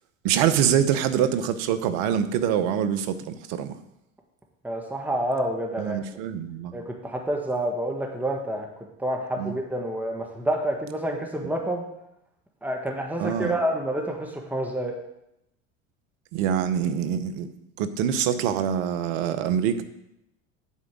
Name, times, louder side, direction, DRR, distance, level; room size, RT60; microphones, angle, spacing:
voice 1, 0.2-3.8 5.8-6.7 9.4-9.5 13.2-13.6 16.3-17.5 17.8-19.8, right 9 dB, 70° right, 11 dB, 1.0 m, -25 dB
voice 2, 4.6-6.0 6.7-8.7 9.0-11.8 12.6-14.9, right 1 dB, 5° right, 1 dB, 1.6 m, -28 dB
8.4 x 5.0 x 7.5 m, 0.83 s
hypercardioid pair, 80°, 39 cm